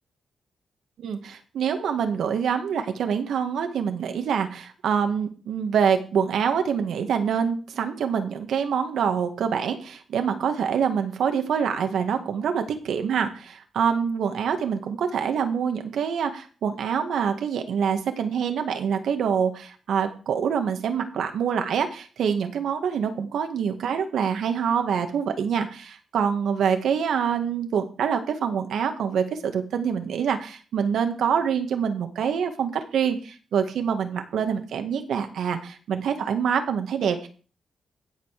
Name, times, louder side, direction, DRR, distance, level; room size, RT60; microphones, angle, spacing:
voice 1, 1.0-37.3, right 7 dB, 85° right, 6 dB, 1.9 m, -25 dB
16.0 x 5.5 x 6.8 m, 0.38 s
cardioid pair, 125°, 0 cm